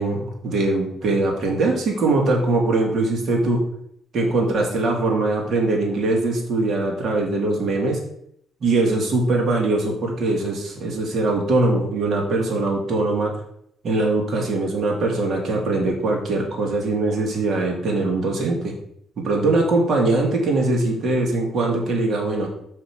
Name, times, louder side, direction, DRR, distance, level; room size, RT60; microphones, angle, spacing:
voice 1, 0.0-3.7 4.1-8.0 8.6-13.3 13.8-18.7 19.2-22.5, right 2 dB, 55° right, 0 dB, 2.5 m, -21 dB
6.1 x 5.9 x 4.9 m, 0.71 s
cardioid pair, 100°, 0 cm